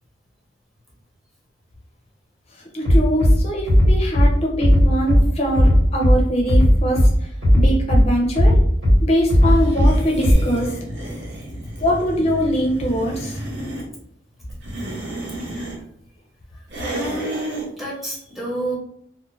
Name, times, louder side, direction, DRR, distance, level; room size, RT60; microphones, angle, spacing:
voice 1, 2.5-8.6 9.0-10.8 11.8-13.4, equal, 35° left, -1 dB, 0.5 m, -22 dB
Bass drum, 2.8-3.3 3.7-4.3 4.6-5.2 5.5-6.2 6.5-7.1 7.4-8.0 8.4-9.0 9.3-9.9 10.2-10.3, equal, 80° right, 1.3 m, -13 dB
sound 1, 9.4-13.9 14.5-15.8 16.7-17.7, right 1 dB, 65° right, 0.7 m, -31 dB
voice 2, 16.9-18.8, right 2 dB, ahead, -4 dB, 0.7 m, -29 dB
2.4 x 2.1 x 3.1 m, 0.70 s
head